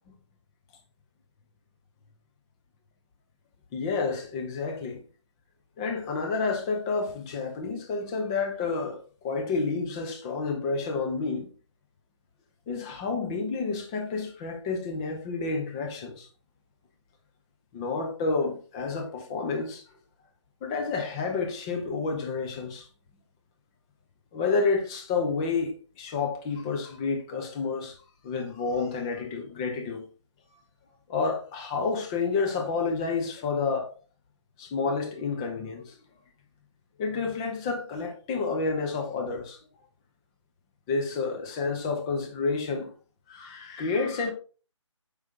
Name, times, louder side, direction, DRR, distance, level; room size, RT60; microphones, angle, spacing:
voice 1, 3.7-5.0 5.8-11.5 12.7-16.3 17.7-19.8 20.6-22.9 24.3-28.0 28.2-30.1 31.1-33.9 34.6-36.0 37.0-39.6 40.9-42.9 43.3-44.3, left 4 dB, 10° left, 0.5 m, -29 dB
7.8 x 5.2 x 2.7 m
figure-of-eight pair, 150°, 16 cm